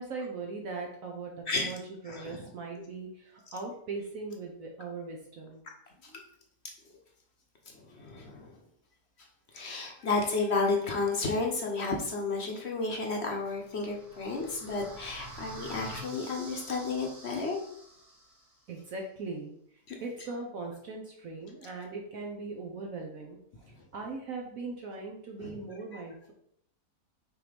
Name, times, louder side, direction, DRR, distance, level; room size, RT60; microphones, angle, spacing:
voice 1, 0.0-5.6 18.7-19.5 20.0-23.4 23.9-26.3, right 3 dB, 60° right, 1 dB, 1.1 m, -39 dB
voice 2, 2.1-2.5 6.0-6.1 7.7-8.5 9.5-17.6 19.9-20.0 25.4-25.6 25.9-26.0, left 3 dB, 50° left, 1 dB, 1.0 m, -32 dB
sound 1, 13.4-18.5, right 2 dB, 90° right, 2.1 m, -47 dB
6.2 x 3.1 x 5.0 m, 0.70 s
omnidirectional pair, 1.7 m